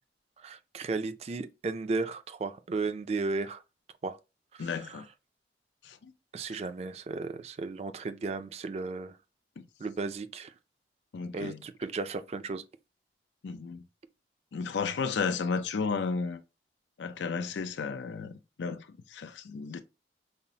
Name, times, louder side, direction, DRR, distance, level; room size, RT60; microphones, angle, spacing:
voice 1, 0.4-3.6 4.0-4.2 4.5-5.0 6.3-9.2 9.8-10.5 11.3-12.6, right 3 dB, 35° right, 0.3 m, -34 dB
voice 2, 4.6-5.1 5.8-6.1 11.1-11.6 13.4-13.8 14.5-16.4 17.0-19.8, left 5 dB, 90° left, 0.4 m, -33 dB
5.4 x 2.0 x 2.7 m
head